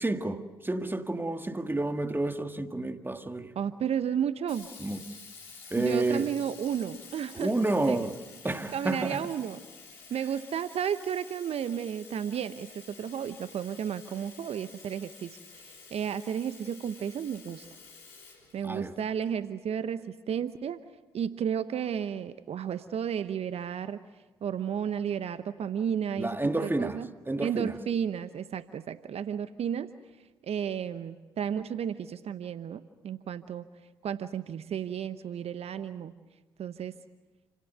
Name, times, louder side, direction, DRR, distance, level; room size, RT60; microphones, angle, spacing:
voice 1, 0.0-3.5 4.8-5.0 5.7-6.3 7.3-8.2 8.4-9.2 18.6-18.9 26.2-27.0 27.3-27.8, right 2 dB, 15° right, 1.8 m, -30 dB
voice 2, 3.6-4.7 5.8-7.5 7.9-8.0 8.4-9.6 9.9-17.7 18.5-20.8 21.1-24.0 24.4-27.1 27.4-29.9 30.4-33.7 34.0-36.1 36.6-36.9, right 8 dB, 60° right, 0.9 m, -33 dB
Sink (filling or washing), 4.5-19.2, left 5 dB, 85° left, 3.8 m, -50 dB
29.0 x 17.0 x 8.1 m
hypercardioid pair, 40°, 12 cm